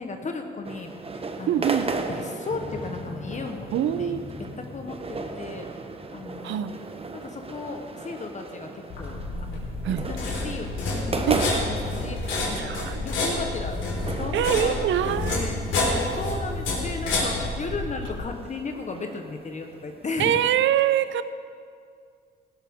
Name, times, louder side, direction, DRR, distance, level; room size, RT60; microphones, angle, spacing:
voice 1, 0.0-1.7 2.1-3.7 4.0-4.2 4.7-5.7 6.1-6.8 7.1-9.6 10.0-13.9 14.2-14.8 15.0-20.4, left 3 dB, 35° left, 4 dB, 1.1 m, -35 dB
sound 1, 0.6-20.2, right 3 dB, 30° right, 1.1 m, -37 dB
voice 2, 1.5-1.9 3.7-4.2 6.4-6.8 9.8-10.0 11.3-11.4 12.6-13.0 14.3-15.4 20.2-21.2, right 10 dB, 70° right, 13 dB, 0.7 m, -24 dB
Motorcycle, 2.5-7.7, left 3 dB, 55° left, 3.4 m, -42 dB
sound 2, 8.9-18.2, left 2 dB, 75° left, 4.0 m, -29 dB
17.0 x 13.5 x 3.7 m, 2.2 s
cardioid pair, 90°, 20 cm